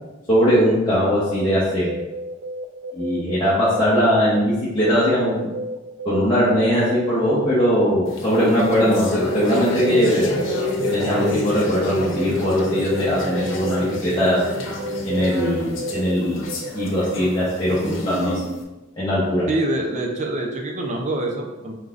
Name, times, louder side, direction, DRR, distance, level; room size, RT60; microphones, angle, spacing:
voice 1, 0.3-1.9 2.9-5.4 6.0-10.3 10.9-14.4 15.0-16.5 16.7-18.4 19.0-19.4, equal, 25° left, -9 dB, 0.8 m, -20 dB
sound 1, 0.9-4.4 4.8-7.8 8.3-14.0 14.8-16.2 16.5-17.1, right 1 dB, 85° right, 0.4 m, -31 dB
sound 2, 8.1-18.6, left 1 dB, 80° left, 0.8 m, -28 dB
voice 2, 19.5-21.7, right 2 dB, 40° right, 1 dB, 0.6 m, -25 dB
4.5 x 3.8 x 2.5 m, 1.1 s
head